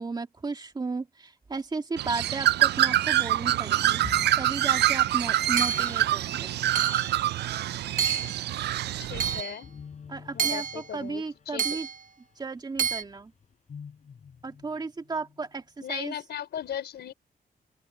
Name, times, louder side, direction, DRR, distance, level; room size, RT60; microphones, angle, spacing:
voice 1, 0.0-4.0 4.4-6.6 10.1-11.9 12.4-13.3 14.4-16.1, right 4 dB, 25° right, 2.2 m, -34 dB
Bird, 2.0-9.4, right 13 dB, 80° right, 0.4 m, -25 dB
sound 1, 4.0-15.6, left 6 dB, 45° left, 7.1 m, -49 dB
Hammer / Chink clink, 5.6-6.0 6.8-7.1 8.0-8.4 9.2-9.6 10.4-10.9 11.6-12.0 12.8-13.0, right 7 dB, 50° right, 0.9 m, -29 dB
voice 2, 9.0-9.7 10.3-11.8 15.8-17.1, left 9 dB, 80° left, 5.1 m, -37 dB
open air
wide cardioid pair, 160°, 17 cm